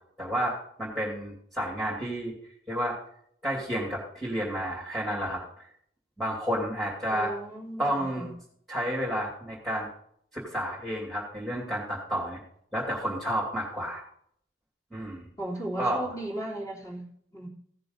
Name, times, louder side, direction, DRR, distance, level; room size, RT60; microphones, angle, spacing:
voice 1, 0.2-2.3 2.7-3.0 3.4-5.7 6.2-7.3 7.8-8.3 8.7-9.9 10.3-12.4 12.7-14.0 14.9-15.3 15.8-16.2, equal, ahead, -6 dB, 2.8 m, -31 dB
voice 2, 7.1-8.3 15.4-17.5, right 1 dB, 20° left, -1 dB, 3.2 m, -36 dB
16.0 x 6.8 x 4.0 m, 0.65 s
head